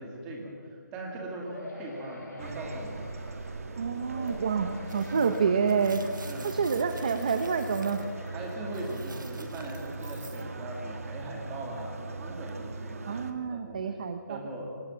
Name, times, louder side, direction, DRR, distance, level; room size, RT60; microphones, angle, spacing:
voice 1, 0.0-3.0 6.2-6.6 8.3-13.8 14.3-14.7, right 2 dB, 10° right, 0 dB, 2.4 m, -40 dB
sound 1, 1.5-3.6 4.1-6.3 6.7-9.5 10.1-10.2 10.5-10.6, left 2 dB, 60° left, 7.7 m, -46 dB
sound 2, 2.4-13.3, right 3 dB, 50° right, 2.1 m, -39 dB
voice 2, 3.8-6.0 6.4-8.0 13.1-14.4, right 6 dB, 25° right, 9 dB, 0.8 m, -28 dB
sound 3, 4.3-4.4 4.9-10.4, right 3 dB, 90° right, 2.9 m, -50 dB
25.0 x 20.0 x 7.3 m, 2.1 s
hypercardioid pair, 175°, 10 cm